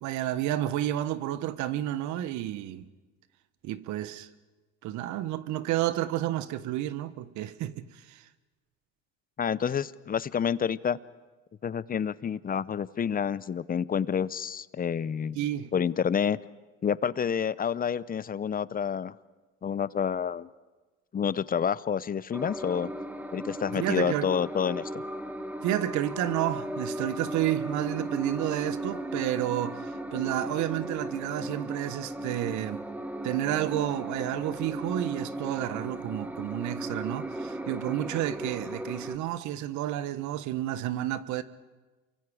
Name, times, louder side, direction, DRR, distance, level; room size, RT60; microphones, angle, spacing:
voice 1, 0.0-2.9 3.6-4.3 4.8-8.3 15.3-15.7 23.7-24.3 25.6-32.8 33.2-41.4, right 13 dB, 65° right, 1.2 m, -31 dB
voice 2, 9.4-11.0 11.6-15.4 15.7-16.4 16.8-19.1 19.6-20.5 21.1-22.9 23.3-25.0, left 7 dB, 30° left, 0.7 m, -28 dB
sound 1, 22.3-39.2, right 1 dB, 5° right, 1.4 m, -36 dB
29.0 x 24.0 x 4.9 m
supercardioid pair, 85°, 31 cm